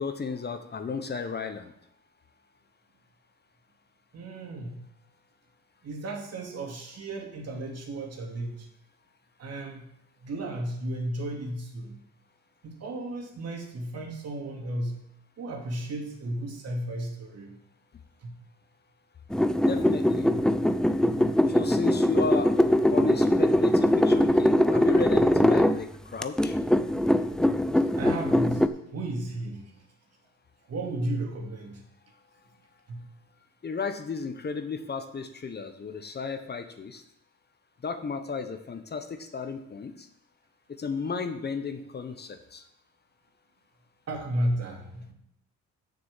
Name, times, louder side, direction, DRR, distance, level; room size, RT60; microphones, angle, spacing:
voice 1, 0.0-1.7 19.7-20.3 21.5-22.6 22.9-26.6 33.6-37.0 37.8-40.1 40.7-42.6, left 5 dB, 35° left, 9 dB, 0.9 m, -33 dB
voice 2, 4.1-4.8 5.8-8.7 9.4-9.9 10.2-12.0 12.6-15.0 15.4-17.6 18.2-18.3 28.0-29.8 30.7-31.8 32.9-33.1 44.1-45.1, right 1 dB, 55° right, 1 dB, 2.5 m, -34 dB
sound 1, 19.3-25.8 26.2-28.7, left 1 dB, ahead, 0.5 m, -22 dB
6.8 x 6.5 x 7.4 m, 0.77 s
cardioid pair, 90°, 30 cm